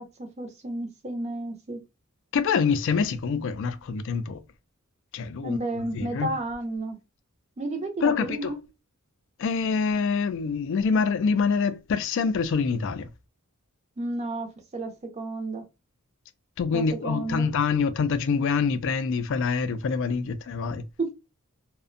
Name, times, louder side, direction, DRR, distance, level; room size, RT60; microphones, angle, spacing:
voice 1, 0.0-1.8 5.4-7.0 7.6-8.6 14.0-15.6 16.7-17.5 21.0-21.1, right 2 dB, 30° right, 0.5 m, -32 dB
voice 2, 2.3-4.4 5.1-6.3 8.0-8.5 9.4-13.1 16.6-20.8, left 5 dB, 60° left, 0.3 m, -26 dB
2.5 x 2.1 x 2.5 m
head